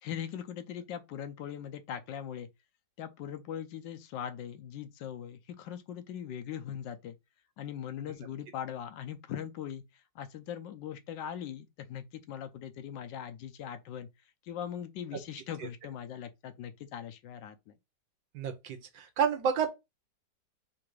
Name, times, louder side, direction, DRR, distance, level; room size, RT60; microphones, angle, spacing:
voice 1, 0.0-2.5 3.0-7.2 7.6-9.8 10.1-14.1 14.4-17.7, left 9 dB, 80° left, 1.3 m, -40 dB
voice 2, 18.3-19.7, right 7 dB, 80° right, 1.6 m, -30 dB
3.9 x 2.6 x 4.5 m
omnidirectional pair, 2.0 m